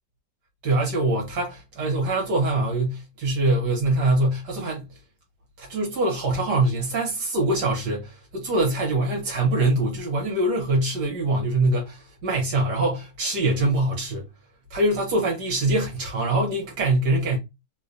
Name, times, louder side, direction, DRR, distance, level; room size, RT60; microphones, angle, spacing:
voice 1, 0.6-4.9 5.6-14.2 14.7-17.4, right 2 dB, 65° right, 1.9 m, -24 dB
3.7 x 3.0 x 2.6 m
omnidirectional pair, 2.0 m